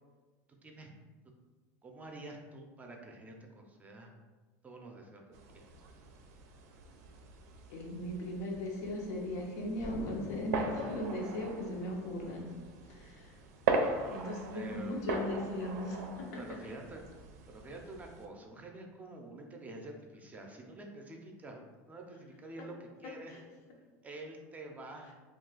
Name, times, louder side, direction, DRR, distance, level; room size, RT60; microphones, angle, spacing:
voice 1, 0.6-0.9 1.8-4.1 4.6-5.2 5.5-5.6 14.5-15.0 16.4-17.0 17.5-23.3 24.0-25.1, right 2 dB, 20° right, 1 dB, 0.4 m, -48 dB
sound 1, 5.3-18.3, right 4 dB, 85° right, 0.4 m, -40 dB
voice 2, 7.7-12.5 12.9-13.4 14.1-16.4 23.3-23.4, left 1 dB, 85° left, -1 dB, 0.7 m, -38 dB
Explosion, 9.8-12.5, left 2 dB, 45° left, 0.6 m, -45 dB
2.3 x 2.2 x 3.9 m, 1.3 s
supercardioid pair, 115°, 8 cm